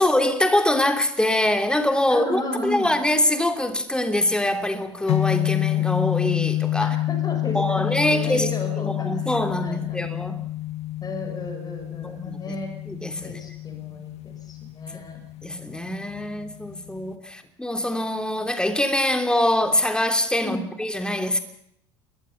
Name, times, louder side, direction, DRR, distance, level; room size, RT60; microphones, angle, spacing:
voice 1, 0.0-6.9 7.5-10.4 12.0-12.4 12.9-13.4 13.9-14.0 14.9-15.0 15.4-21.4, left 1 dB, 5° left, 6 dB, 3.1 m, -24 dB
voice 2, 2.1-3.0 6.8-9.2 9.6-10.0 11.0-12.7 13.2-15.2 20.4-20.7, left 2 dB, 25° left, 6 dB, 6.4 m, -34 dB
sound 1, 5.1-17.2, left 15 dB, 50° left, 1.7 m, -28 dB
28.5 x 22.0 x 5.7 m, 0.71 s
figure-of-eight pair, 65°, 15 cm